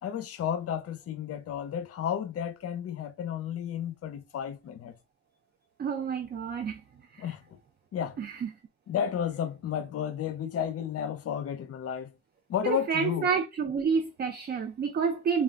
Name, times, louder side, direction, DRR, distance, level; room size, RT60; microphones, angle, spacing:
voice 1, 0.0-4.9 7.2-7.6 7.9-8.2 8.9-12.2 12.5-13.3, left 9 dB, 50° left, 0.6 m, -32 dB
voice 2, 5.8-6.8 7.1-7.3 8.2-8.5 12.6-15.4, right 6 dB, 35° right, 0.4 m, -29 dB
2.3 x 2.2 x 3.5 m
cardioid pair, 90°, 30 cm